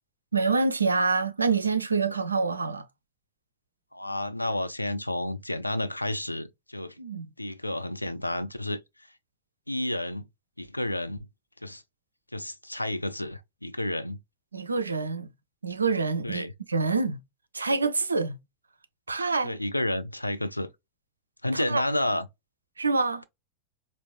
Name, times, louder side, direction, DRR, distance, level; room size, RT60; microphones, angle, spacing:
voice 1, 0.3-2.9 7.0-7.3 14.5-15.3 15.6-17.2 17.5-18.4 19.1-19.5 21.5-21.8 22.8-23.2, right 4 dB, 80° right, 0.4 m, -26 dB
voice 2, 3.9-7.0 7.4-8.8 9.7-10.2 10.6-11.2 11.6-11.8 12.3-14.2 16.2-16.5 19.4-20.7 21.4-22.3, left 1 dB, 85° left, 0.4 m, -30 dB
4.5 x 2.5 x 2.2 m
figure-of-eight pair, 90°, 0 cm